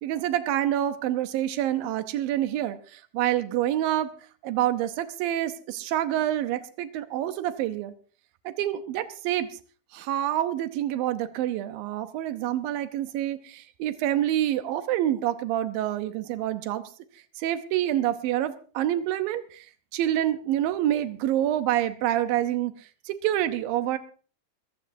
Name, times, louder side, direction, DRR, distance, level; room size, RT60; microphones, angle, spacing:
voice 1, 0.0-4.1 4.4-7.9 8.5-9.5 9.9-16.8 17.4-19.7 19.9-24.0, right 12 dB, 90° right, 10 dB, 2.7 m, -27 dB
22.0 x 15.0 x 2.7 m, 0.39 s
omnidirectional pair, 4.0 m